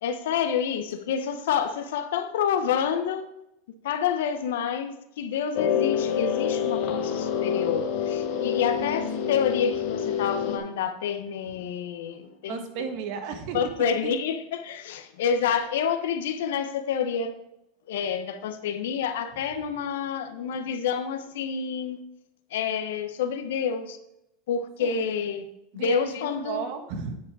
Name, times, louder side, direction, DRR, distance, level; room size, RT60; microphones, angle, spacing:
voice 1, 0.0-3.3 3.8-12.7 13.5-17.3 17.9-22.0 22.5-24.0 24.5-25.4 25.7-26.7, left 7 dB, 80° left, 0.9 m, -28 dB
sound 1, 5.6-10.6, left 8 dB, 60° left, 1.1 m, -27 dB
voice 2, 8.8-9.4 12.5-13.6 14.0-14.2 24.8-25.2 25.7-27.2, right 6 dB, 60° right, 1.4 m, -35 dB
9.4 x 4.9 x 4.8 m
supercardioid pair, 120°, 0 cm